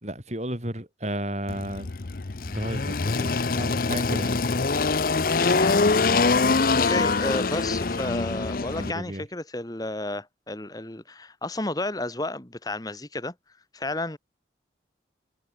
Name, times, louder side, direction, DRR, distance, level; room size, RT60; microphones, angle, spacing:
voice 1, 0.0-1.9 2.4-4.4 8.7-9.3, right 1 dB, 40° right, 4.7 m, -33 dB
Engine, 1.5-8.9, left 4 dB, 50° left, 0.7 m, -24 dB
voice 2, 5.4-5.8 6.9-13.3 13.7-14.2, left 2 dB, 20° left, 1.5 m, -32 dB
head